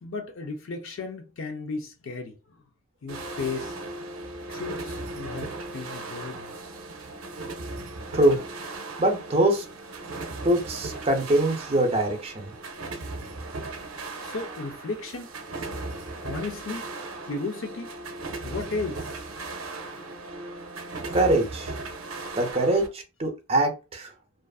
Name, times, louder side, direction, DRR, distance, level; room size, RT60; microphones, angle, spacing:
voice 1, 0.0-2.4 3.0-3.8 4.5-6.6 14.2-15.3 16.2-16.9 17.2-17.9 18.4-19.1, left 4 dB, 60° left, 0.4 m, -34 dB
sound 1, 3.1-22.9, right 2 dB, 75° right, 0.5 m, -37 dB
voice 2, 9.0-9.6 10.4-12.5 21.1-21.8 22.4-24.1, right 1 dB, 30° right, 0.5 m, -23 dB
2.5 x 2.4 x 2.3 m
head